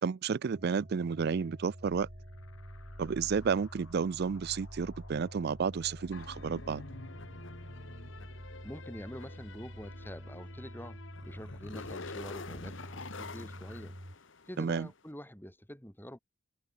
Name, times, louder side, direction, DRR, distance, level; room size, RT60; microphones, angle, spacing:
voice 1, 0.0-2.1 3.0-6.8 14.6-14.9, right 6 dB, 50° right, 0.4 m, -31 dB
sound 1, 0.5-14.2, equal, 35° right, 4.4 m, -48 dB
sound 2, 1.8-13.2, left 1 dB, 80° left, 2.8 m, -54 dB
sound 3, 6.1-14.8, left 3 dB, 65° left, 1.3 m, -47 dB
voice 2, 8.6-14.0 14.5-16.2, equal, 10° left, 4.5 m, -46 dB
head